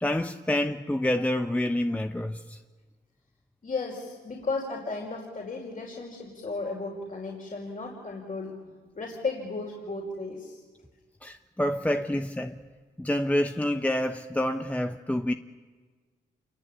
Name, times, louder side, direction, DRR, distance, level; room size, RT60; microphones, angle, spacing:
voice 1, 0.0-2.6 11.2-12.6 13.0-15.3, left 1 dB, 10° left, 1.0 m, -27 dB
voice 2, 3.6-8.6 9.0-10.6, left 3 dB, 45° left, 5.2 m, -34 dB
27.0 x 23.5 x 8.7 m
cardioid pair, 65°, 19 cm